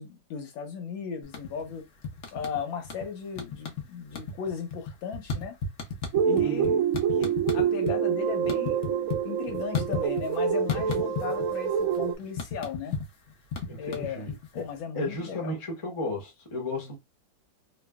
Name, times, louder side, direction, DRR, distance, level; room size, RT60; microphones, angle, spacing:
voice 1, 0.0-1.9 2.3-5.6 6.2-6.8 7.2-8.9 9.2-13.0 13.8-15.5, left 6 dB, 90° left, 1.7 m, -36 dB
sound 1, 1.2-1.7 2.0-3.1 3.3-3.8 4.1-8.0 8.3-10.4 10.7-11.5 11.8-14.7, left 5 dB, 55° left, 0.9 m, -33 dB
sound 2, 6.1-12.1, right 8 dB, 80° right, 0.7 m, -26 dB
voice 2, 6.4-6.8 13.7-14.6 14.9-17.0, left 2 dB, 20° left, 0.9 m, -34 dB
3.3 x 3.1 x 2.2 m
omnidirectional pair, 2.0 m